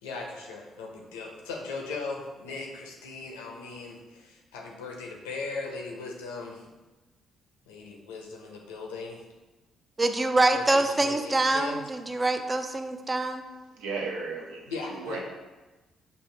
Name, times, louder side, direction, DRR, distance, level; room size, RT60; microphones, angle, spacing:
voice 1, 0.0-6.6 7.7-9.2 10.5-11.8 14.7-15.2, left 3 dB, 90° left, 0.6 m, -38 dB
voice 2, 10.0-13.5, right 2 dB, 25° right, 0.4 m, -25 dB
voice 3, 13.8-15.2, right 4 dB, 80° right, 0.7 m, -35 dB
5.3 x 2.1 x 3.2 m
hypercardioid pair, 50°, 0 cm